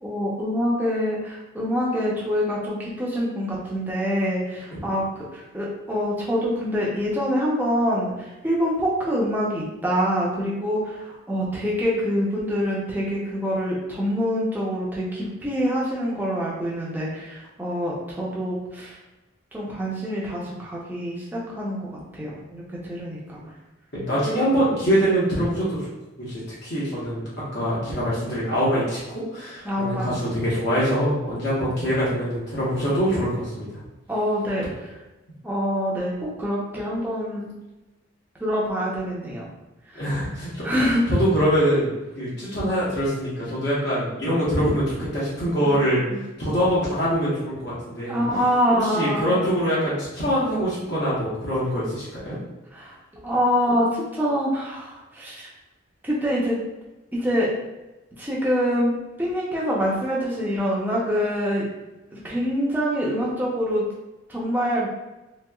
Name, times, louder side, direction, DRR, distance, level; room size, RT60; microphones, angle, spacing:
voice 1, 0.0-19.0 19.5-23.4 29.6-30.1 34.1-34.9 35.4-37.5 38.4-39.4 39.9-40.0 40.6-41.0 45.6-45.8 46.1-46.2 48.1-49.5 52.7-52.9 53.2-55.5 56.0-56.6 57.1-57.5 58.2-61.6 62.1-63.8 64.3-64.9, equal, 10° right, -5 dB, 0.6 m, -25 dB
voice 2, 23.9-25.9 26.2-27.2 27.5-33.7 39.9-40.7 41.1-46.0 46.4-48.2 48.8-52.4, equal, 55° left, -9 dB, 0.9 m, -24 dB
3.0 x 2.8 x 2.3 m, 1.0 s
head